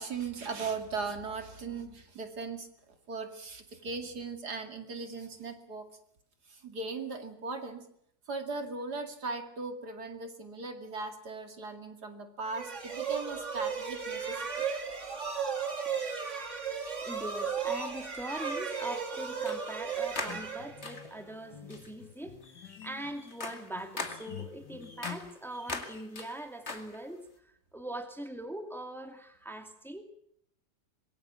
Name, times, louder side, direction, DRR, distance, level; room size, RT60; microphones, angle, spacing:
voice 1, 0.0-2.7 3.1-5.9 6.5-7.9 8.3-14.6, right 4 dB, 70° right, 6 dB, 2.9 m, -38 dB
sound 1, 12.5-21.2, right 6 dB, 45° right, 2.8 m, -35 dB
sound 2, 14.1-14.2 15.8-16.0 17.0-17.1 19.4-19.8 20.1-21.2 21.7-22.0 22.4-27.3, left 3 dB, 40° left, 2.6 m, -42 dB
voice 2, 17.0-27.3 27.7-30.0, right 1 dB, ahead, 6 dB, 2.4 m, -42 dB
sound 3, 20.1-25.4, left 10 dB, 80° left, 1.8 m, -49 dB
25.5 x 22.0 x 7.2 m, 0.69 s
omnidirectional pair, 1.8 m